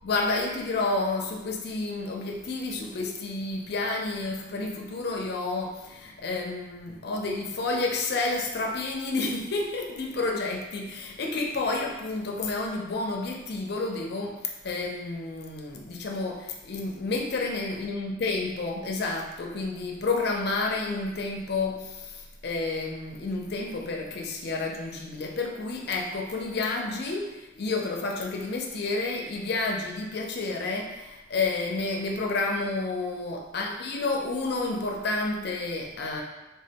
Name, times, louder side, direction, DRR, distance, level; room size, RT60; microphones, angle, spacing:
voice 1, 0.0-36.2, left 3 dB, 55° left, 1 dB, 0.4 m, -30 dB
3.4 x 2.1 x 2.7 m, 1.0 s
head